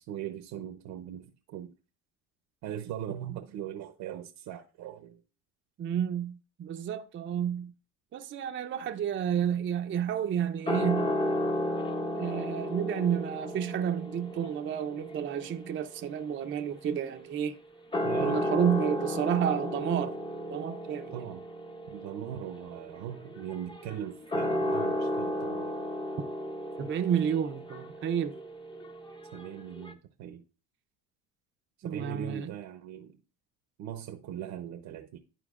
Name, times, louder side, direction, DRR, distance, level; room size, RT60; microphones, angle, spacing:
voice 1, 0.0-1.7 2.6-5.2 18.0-18.5 21.1-21.4 21.9-25.7 29.3-30.4 31.8-33.2 33.8-35.2, right 10 dB, 60° right, 0.9 m, -40 dB
voice 2, 5.8-7.7 8.1-11.1 12.1-17.5 18.2-20.2 20.5-21.2 26.8-28.3 31.8-32.5, right 8 dB, 30° right, 0.6 m, -30 dB
sound 1, 10.7-17.3 17.8-29.9, left 1 dB, 10° left, 0.7 m, -34 dB
12.0 x 4.4 x 2.4 m
supercardioid pair, 115°, 41 cm